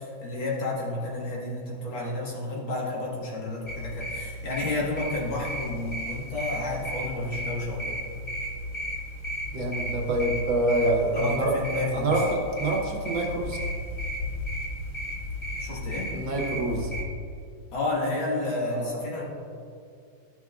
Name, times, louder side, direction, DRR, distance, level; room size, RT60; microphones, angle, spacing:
voice 1, 0.0-8.0 11.1-12.2 15.6-16.1 17.7-19.3, left 2 dB, 70° left, -5 dB, 2.4 m, -31 dB
sound 1, 3.7-17.0, equal, 35° left, 0.5 m, -34 dB
voice 2, 9.5-11.5 11.9-13.6 16.1-16.9 18.7-19.0, right 2 dB, 70° right, 0 dB, 1.7 m, -26 dB
12.5 x 5.8 x 2.4 m, 2.3 s
omnidirectional pair, 2.2 m